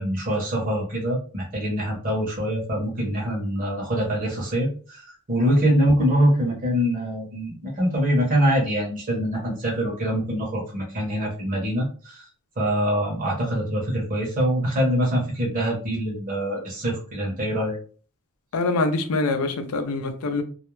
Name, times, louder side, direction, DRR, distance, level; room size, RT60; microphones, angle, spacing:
voice 1, 0.0-12.3 12.6-17.8, equal, 40° right, 0.7 m, -24 dB
voice 2, 18.5-20.4, left 3 dB, 80° left, 0.5 m, -24 dB
2.3 x 2.1 x 3.0 m
head